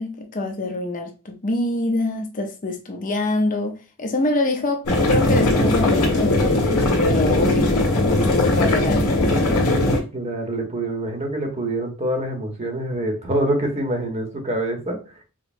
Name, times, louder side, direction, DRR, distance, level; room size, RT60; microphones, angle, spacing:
voice 1, 0.0-9.8, left 2 dB, 40° left, 0.6 m, -25 dB
sound 1, 4.9-10.0, left 1 dB, 80° left, 1.6 m, -19 dB
voice 2, 10.1-15.0, right 1 dB, 30° right, 0.8 m, -25 dB
5.1 x 2.0 x 2.6 m
head